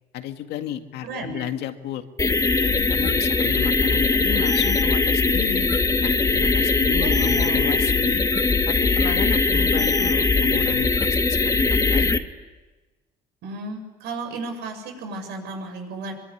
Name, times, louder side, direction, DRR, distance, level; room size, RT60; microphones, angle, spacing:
voice 1, 0.1-2.0 2.6-5.7 6.0-8.2 8.7-12.1, left 11 dB, 80° left, 6 dB, 2.1 m, -32 dB
voice 2, 1.0-1.5 7.0-7.7 13.4-16.1, right 3 dB, 85° right, 5 dB, 7.4 m, -34 dB
sound 1, 2.2-12.2, left 3 dB, 20° left, 1.7 m, -20 dB
25.5 x 23.5 x 9.9 m, 1.2 s
cardioid pair, 110°, 17 cm